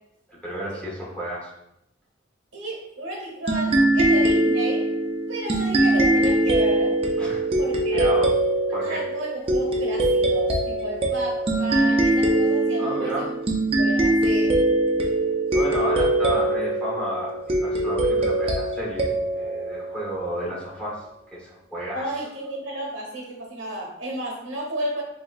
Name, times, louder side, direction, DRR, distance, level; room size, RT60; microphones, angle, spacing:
voice 1, 0.3-1.5 7.2-7.4 7.9-8.3 8.7-9.0 12.8-13.3 15.5-21.1 21.3-22.0, equal, 5° left, -6 dB, 0.9 m, -32 dB
voice 2, 2.5-4.8 5.3-6.9 7.6-8.1 8.8-13.3 13.7-14.6 21.9-25.0, right 1 dB, 90° right, -2 dB, 1.0 m, -32 dB
sound 1, 3.5-20.6, right 1 dB, 30° right, 0.4 m, -22 dB
3.7 x 2.7 x 2.3 m, 0.83 s
head